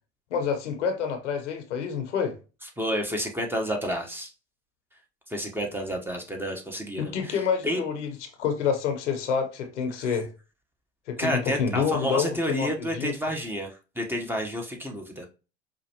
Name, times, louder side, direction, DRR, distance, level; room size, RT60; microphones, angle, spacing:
voice 1, 0.3-2.4 7.0-8.1 8.4-10.3 11.1-13.1, left 6 dB, 80° left, 0.9 m, -28 dB
voice 2, 2.8-4.3 5.3-7.4 7.6-7.8 11.2-15.3, equal, 5° right, 1.0 m, -30 dB
4.9 x 2.5 x 2.9 m
hypercardioid pair, 80°, 35 cm